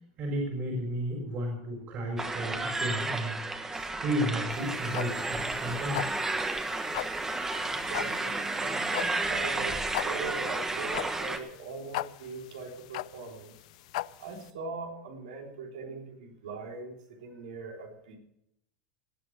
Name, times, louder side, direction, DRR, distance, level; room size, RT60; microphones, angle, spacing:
voice 1, 0.2-6.0, equal, 45° right, 0 dB, 4.6 m, -33 dB
sound 1, 2.2-11.4, right 2 dB, 15° right, 1.5 m, -32 dB
sound 2, 4.5-14.5, left 17 dB, 75° left, 0.5 m, -38 dB
voice 2, 7.6-13.5 14.2-18.2, right 4 dB, 85° right, 1 dB, 3.8 m, -41 dB
19.0 x 8.3 x 6.6 m, 0.81 s
supercardioid pair, 125°, 4 cm